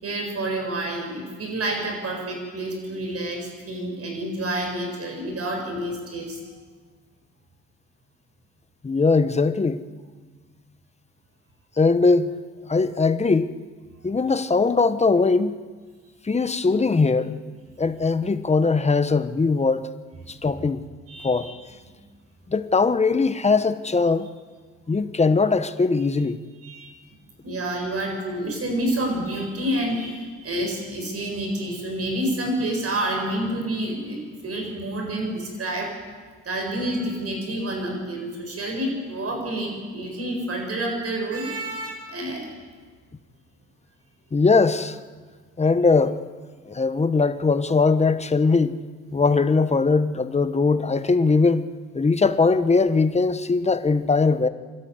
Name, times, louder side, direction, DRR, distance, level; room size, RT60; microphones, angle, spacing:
voice 1, 0.0-6.5 21.1-21.5 26.6-26.9 27.4-34.2 34.4-35.9 36.4-42.5, right 1 dB, 50° right, 7.7 m, -28 dB
voice 2, 8.8-9.8 11.8-12.3 12.7-13.5 14.0-15.6 16.2-17.4 17.8-19.9 20.3-20.8 21.2-21.5 22.5-24.3 24.9-26.4 44.3-45.0 45.6-46.2 46.7-48.8 49.1-51.6 51.9-54.5, left 4 dB, 20° left, 1.2 m, -20 dB
26.0 x 12.5 x 9.5 m
cardioid pair, 90°, 30 cm